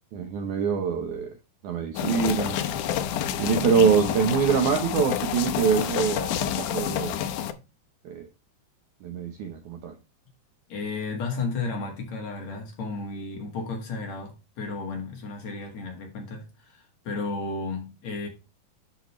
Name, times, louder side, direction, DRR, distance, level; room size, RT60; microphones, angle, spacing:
voice 1, 0.1-1.3 1.6-2.6 3.4-7.2 8.1-8.3 9.0-10.0, right 6 dB, 75° right, 1.8 m, -24 dB
sound 1, 1.9-7.5, left 9 dB, 75° left, 1.9 m, -28 dB
voice 2, 10.7-18.3, left 3 dB, 55° left, 2.6 m, -33 dB
10.5 x 5.1 x 3.1 m
omnidirectional pair, 4.5 m